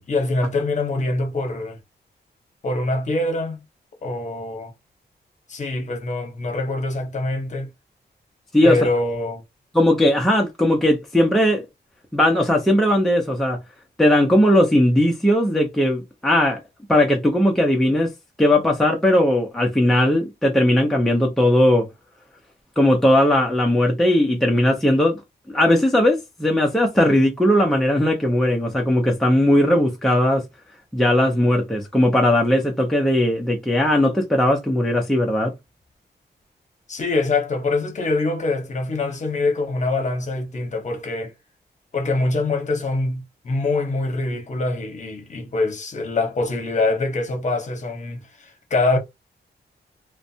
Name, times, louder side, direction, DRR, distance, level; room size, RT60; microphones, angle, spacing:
voice 1, 0.0-1.8 2.6-3.6 4.0-4.7 5.5-7.7 8.6-9.4 36.9-41.3 41.9-49.0, left 2 dB, 45° left, 0.9 m, -24 dB
voice 2, 9.7-11.6 12.1-13.6 14.0-16.6 16.9-18.1 18.4-21.9 22.8-25.2 25.5-30.4 30.9-35.5, left 1 dB, ahead, 0.5 m, -18 dB
2.5 x 2.1 x 2.7 m
wide cardioid pair, 150°, 18 cm